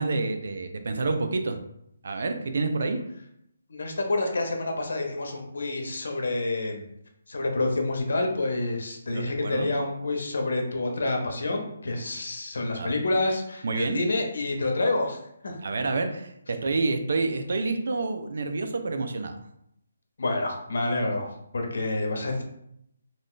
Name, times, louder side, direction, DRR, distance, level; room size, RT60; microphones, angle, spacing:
voice 1, 0.0-1.6 2.0-3.0 9.1-9.7 12.8-13.0 13.6-14.0 15.6-19.4, right 3 dB, 65° right, 7 dB, 0.4 m, -28 dB
voice 2, 3.7-6.8 7.3-15.6 20.2-22.4, left 2 dB, 70° left, 3 dB, 0.7 m, -28 dB
2.5 x 2.3 x 3.6 m, 0.75 s
hypercardioid pair, 160°, 0 cm